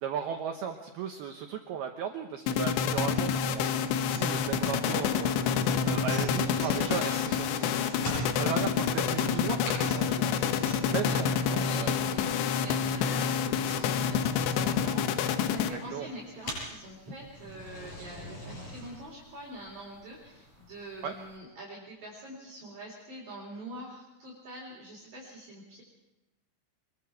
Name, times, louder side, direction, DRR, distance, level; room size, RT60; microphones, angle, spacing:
voice 1, 0.0-5.4 5.8-7.8 8.3-10.3 10.9-12.5 15.9-16.1 21.0-21.1, right 8 dB, 85° right, 4 dB, 2.3 m, -36 dB
sound 1, 2.5-16.1, left 7 dB, 75° left, 2.8 m, -28 dB
sound 2, 2.5-21.4, equal, 35° left, 8.7 m, -46 dB
sound 3, 3.2-11.1, right 3 dB, 20° right, 2.9 m, -46 dB
voice 2, 10.4-25.8, right 1 dB, 45° right, -4 dB, 5.3 m, -45 dB
25.0 x 22.5 x 4.7 m, 1.0 s
omnidirectional pair, 6.0 m